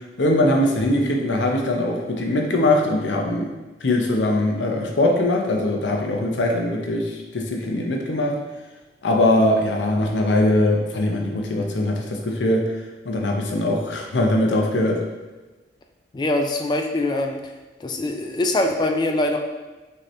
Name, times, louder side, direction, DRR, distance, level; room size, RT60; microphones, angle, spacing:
voice 1, 0.2-3.5 3.8-8.4 9.0-12.7 13.1-15.0, left 1 dB, 85° left, 1 dB, 0.7 m, -21 dB
voice 2, 16.1-17.5 17.8-19.4, left 2 dB, 25° left, 3 dB, 0.3 m, -23 dB
6.3 x 2.9 x 2.6 m, 1.2 s
head